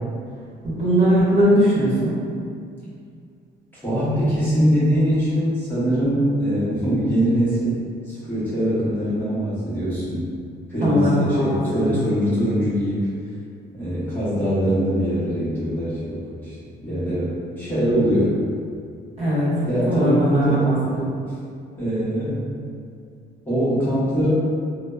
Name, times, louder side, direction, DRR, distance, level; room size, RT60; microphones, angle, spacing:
voice 1, 0.8-2.2 10.8-12.0 19.2-19.5 19.9-21.1, equal, 35° right, -10 dB, 1.0 m, -19 dB
voice 2, 3.8-10.2 10.7-13.1 13.7-16.5 16.8-18.4 19.6-20.7 21.8-22.5 23.5-24.3, equal, 10° left, -13 dB, 0.9 m, -22 dB
2.7 x 2.0 x 2.2 m, 2.3 s
cardioid pair, 110°, 19 cm